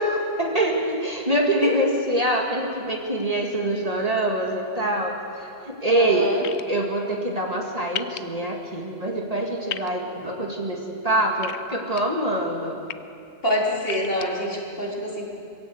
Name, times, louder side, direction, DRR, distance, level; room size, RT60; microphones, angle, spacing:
voice 1, 0.0-6.3 6.7-12.8, right 1 dB, 30° right, 0 dB, 2.0 m, -25 dB
voice 2, 5.9-6.4 13.4-15.2, equal, 45° left, -3 dB, 3.6 m, -26 dB
sound 1, 6.4-6.6 7.9-8.2 9.7-9.9 11.4-12.0 12.6-12.9 13.8-14.3, left 10 dB, 65° left, 0.8 m, -32 dB
22.0 x 16.5 x 8.0 m, 2.5 s
omnidirectional pair, 1.3 m